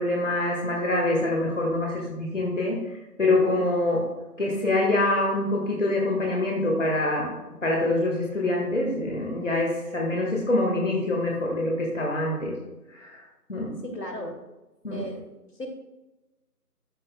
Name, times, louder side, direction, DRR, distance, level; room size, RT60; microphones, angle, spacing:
voice 1, 0.0-4.1 4.4-7.3 7.6-12.6 12.9-13.2 13.5-13.8 14.8-15.0, left 2 dB, 50° left, -1 dB, 1.7 m, -25 dB
voice 2, 13.8-14.3 14.9-15.3 15.5-15.7, left 1 dB, 75° left, 2 dB, 2.3 m, -35 dB
13.5 x 5.8 x 2.2 m, 1.0 s
figure-of-eight pair, 165°, 48 cm